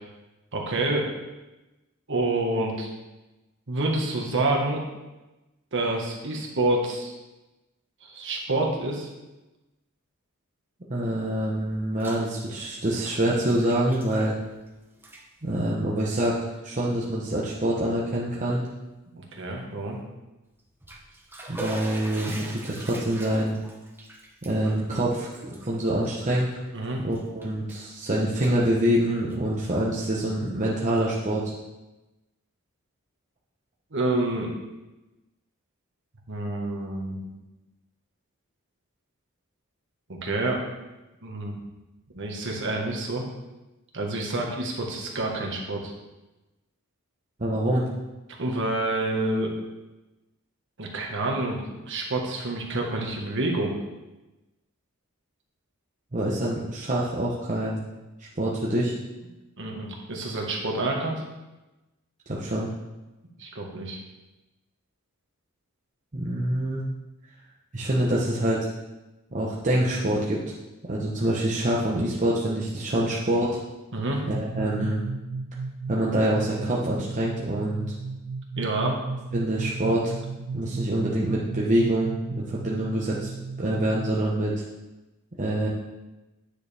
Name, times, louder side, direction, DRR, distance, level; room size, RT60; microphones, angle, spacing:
voice 1, 0.5-1.1 2.1-2.9 3.7-4.8 5.7-7.1 8.0-9.1 19.1-20.0 26.7-27.0 33.9-34.5 36.3-37.2 40.1-40.6 41.2-41.5 42.1-43.2 43.9-45.9 48.4-49.5 50.8-53.7 59.6-61.1 63.4-64.0 73.9-74.2 78.6-79.0, right 2 dB, 55° right, 0 dB, 1.6 m, -28 dB
voice 2, 10.9-14.3 15.4-18.6 21.5-23.6 24.4-26.5 27.0-31.4 47.4-47.8 56.1-57.8 58.4-58.9 62.3-62.7 66.1-66.8 67.7-68.7 69.3-70.4 70.8-73.6 74.3-75.0 75.9-77.9 79.3-80.1 80.5-83.3 83.6-84.6 85.4-85.7, right 1 dB, 35° right, -5 dB, 1.0 m, -26 dB
Bathtub (filling or washing), 11.7-12.3 12.6-14.7 14.9-15.2 16.0-16.1 16.8-16.9 17.3-17.4 20.6-26.7 27.1-27.9 28.2-29.6, right 2 dB, 10° right, 0.9 m, -42 dB
sound 1, 74.3-84.1, right 4 dB, 85° right, 0.4 m, -35 dB
9.9 x 6.6 x 3.5 m, 1.1 s
head